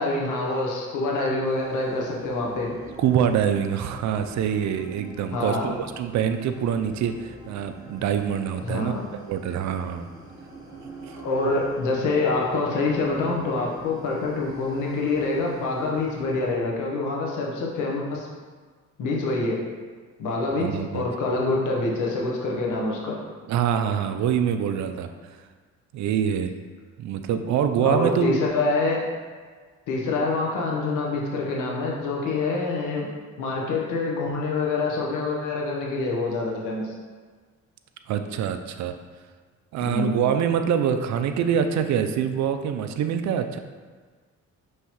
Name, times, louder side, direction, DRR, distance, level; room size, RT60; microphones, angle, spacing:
voice 1, 0.0-2.7 5.3-5.7 8.6-9.0 11.1-18.3 19.0-19.6 20.2-23.2 27.8-29.0 29.9-33.1 33.4-36.9 39.8-40.2, left 3 dB, 90° left, -2 dB, 1.0 m, -26 dB
sound 1, 1.4-16.6, right 2 dB, 10° right, 1.2 m, -44 dB
voice 2, 3.0-8.9 9.2-10.1 10.8-11.2 20.6-21.1 23.5-25.1 25.9-26.5 27.0-28.4 38.1-38.9 39.7-43.6, right 8 dB, 65° right, 8 dB, 0.4 m, -25 dB
5.5 x 3.1 x 3.0 m, 1.5 s
cardioid pair, 90°, 30 cm